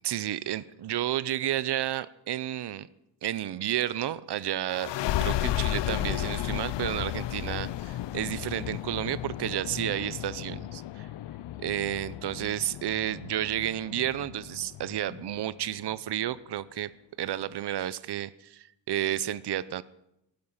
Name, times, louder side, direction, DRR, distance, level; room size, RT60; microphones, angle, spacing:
voice 1, 0.0-2.9 3.2-4.9 5.2-11.1 11.6-16.9 17.2-19.8, right 12 dB, 65° right, 18 dB, 0.7 m, -31 dB
sound 1, 4.7-16.0, left 13 dB, 75° left, 0.5 m, -34 dB
16.0 x 12.0 x 5.6 m, 0.83 s
wide cardioid pair, 110°, 43 cm